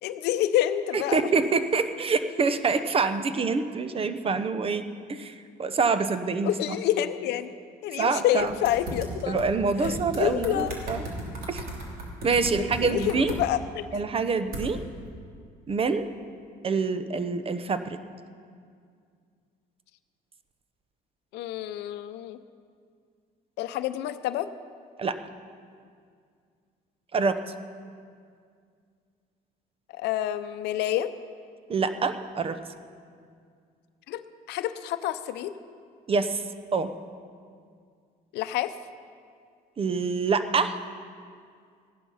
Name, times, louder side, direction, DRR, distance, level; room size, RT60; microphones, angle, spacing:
voice 1, 0.0-1.3 6.4-7.5 7.8-9.4 9.8-10.8 12.8-13.9 21.3-22.4 23.6-24.5 29.9-31.1 34.1-34.2 34.5-35.5 38.3-38.7, left 12 dB, 85° left, 11 dB, 0.7 m, -28 dB
voice 2, 0.9-5.3 5.6-6.5 8.0-8.5 9.3-11.1 11.5-11.6 12.2-13.3 13.9-14.8 15.7-16.1 16.6-18.0 25.0-25.2 27.1-27.4 31.7-32.6 36.1-36.4 36.7-36.9 39.8-40.8, right 4 dB, 35° right, 11 dB, 0.8 m, -26 dB
sound 1, 8.4-9.5 9.8-13.4 14.5-14.7, right 1 dB, 60° right, 2.9 m, -36 dB
15.0 x 11.0 x 5.6 m, 2.2 s
cardioid pair, 110°, 17 cm